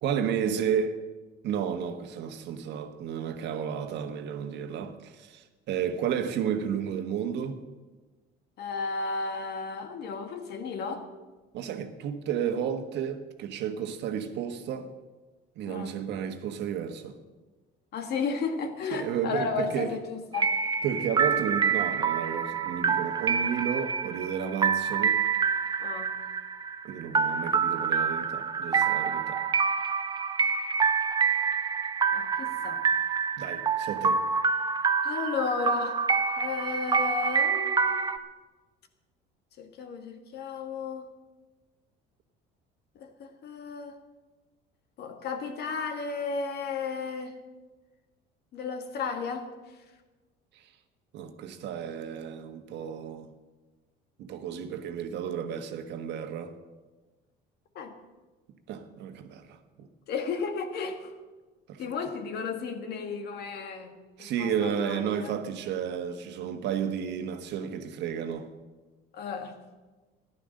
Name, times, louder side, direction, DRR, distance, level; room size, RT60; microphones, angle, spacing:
voice 1, 0.0-1.0 1.4-7.6 11.5-14.9 15.6-17.2 18.9-19.9 20.8-25.2 26.8-29.4 33.4-34.2 50.5-50.6 51.1-53.3 54.2-56.5 58.7-59.9 61.7-61.8 64.2-68.5, right 8 dB, 65° right, 1.4 m, -32 dB
voice 2, 8.6-11.0 15.7-16.0 17.9-20.5 25.8-26.2 32.1-32.8 35.0-36.0 36.4-38.1 39.6-41.1 43.0-44.0 45.0-47.4 48.5-49.5 57.8-58.0 60.1-61.1 61.8-65.4 69.1-69.5, left 5 dB, 55° left, 1.8 m, -33 dB
sound 1, 20.3-38.2, right 6 dB, 20° right, 0.7 m, -27 dB
14.0 x 11.5 x 6.5 m
cardioid pair, 125°, 20 cm